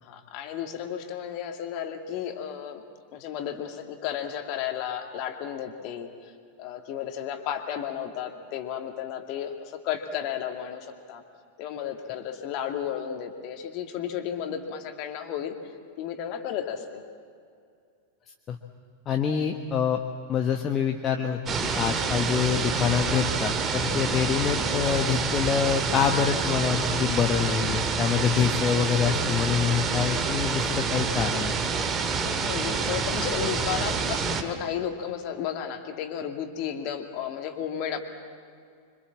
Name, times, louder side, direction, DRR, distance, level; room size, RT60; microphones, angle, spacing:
voice 1, 0.0-2.8 3.1-6.3 6.6-11.2 11.6-15.6 16.0-17.0 32.2-38.0, left 9 dB, 45° left, 5 dB, 2.4 m, -33 dB
voice 2, 19.1-20.0 20.3-31.6, left 8 dB, 30° left, 3 dB, 1.3 m, -26 dB
sound 1, 21.5-34.4, right 5 dB, 25° right, 2.1 m, -27 dB
26.5 x 25.0 x 7.4 m, 2.3 s
figure-of-eight pair, 90°, 0 cm